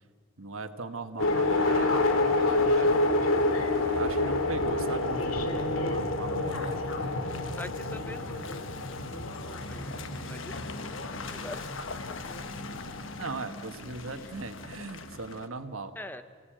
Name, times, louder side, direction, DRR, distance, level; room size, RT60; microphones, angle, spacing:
voice 1, 0.4-3.1 3.9-7.1 13.2-15.9, right 3 dB, 85° right, 8 dB, 1.5 m, -38 dB
sound 1, 1.2-13.4, left 2 dB, 90° left, 2.1 m, -29 dB
Car passing by / Engine, 2.3-15.5, left 3 dB, 75° left, 1.3 m, -44 dB
voice 2, 7.3-8.7 9.4-9.9 10.3-10.7 11.1-11.6 14.1-14.2 16.0-16.2, left 1 dB, 10° left, 10 dB, 0.7 m, -43 dB
28.5 x 17.0 x 8.9 m, 2.1 s
head